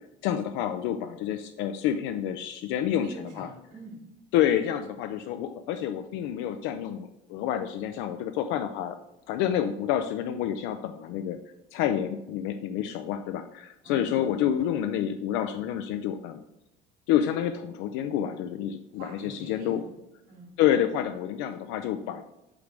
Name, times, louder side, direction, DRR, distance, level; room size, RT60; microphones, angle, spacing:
voice 1, 0.2-3.1 3.4-3.5 4.3-9.0 9.3-11.4 11.7-16.4 17.1-19.8 20.6-22.2, left 10 dB, 65° left, 8 dB, 0.5 m, -28 dB
voice 2, 3.0-4.0 13.8-14.5 18.9-19.9 20.3-20.6, right 2 dB, 60° right, -2 dB, 2.8 m, -45 dB
8.2 x 3.4 x 5.0 m, 0.87 s
cardioid pair, 175°, 21 cm